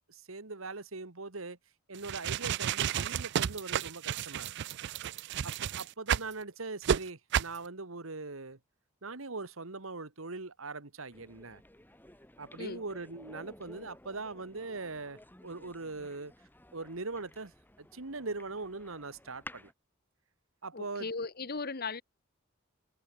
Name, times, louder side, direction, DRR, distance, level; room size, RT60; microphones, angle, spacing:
voice 1, 0.0-1.6 1.9-4.5 5.4-8.6 9.0-11.6 12.4-16.3 16.7-17.5 17.8-19.7 20.6-21.1, right 3 dB, 80° right, 1.9 m, -41 dB
sound 1, 1.9-6.3 6.8-7.0 7.3-7.6, right 9 dB, 60° right, 0.4 m, -31 dB
sound 2, 11.1-19.7, left 1 dB, 10° left, 5.9 m, -54 dB
voice 2, 20.7-22.0, left 4 dB, 50° left, 1.5 m, -37 dB
head